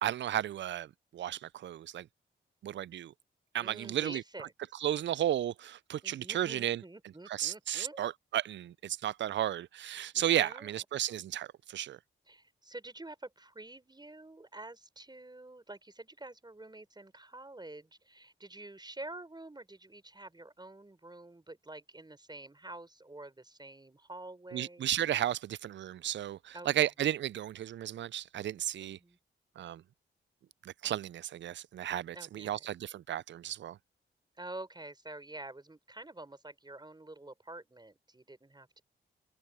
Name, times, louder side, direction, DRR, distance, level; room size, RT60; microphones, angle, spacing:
voice 1, 0.0-2.1 2.6-3.1 3.5-4.2 4.8-6.8 7.3-12.0 24.5-29.0 29.6-29.8 30.6-33.8, right 11 dB, 65° right, 0.4 m, -34 dB
voice 2, 3.6-4.5 6.0-8.0 10.1-10.8 12.3-24.9 26.5-26.9 28.8-29.2 32.1-32.6 34.4-38.8, right 2 dB, 20° right, 4.9 m, -48 dB
open air
cardioid pair, 55°, 21 cm